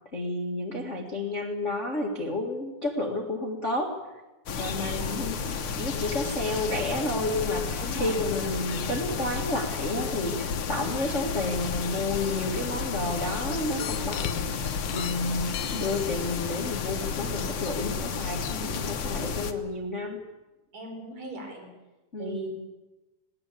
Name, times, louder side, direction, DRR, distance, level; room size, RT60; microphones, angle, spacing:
voice 1, 0.1-4.0 4.6-18.4 18.9-20.2 22.1-22.4, left 2 dB, 30° left, 1 dB, 1.4 m, -31 dB
sound 1, 4.5-19.5, left 6 dB, 60° left, 1.4 m, -32 dB
voice 2, 4.8-5.2 7.8-8.2 18.4-18.8 20.7-21.7 22.2-22.5, right 2 dB, 60° right, 1 dB, 6.8 m, -38 dB
sound 2, 13.6-16.5 17.4-17.5 18.0-18.1, left 10 dB, 90° left, 2.8 m, -39 dB
20.5 x 18.0 x 8.5 m, 1.1 s
omnidirectional pair, 4.1 m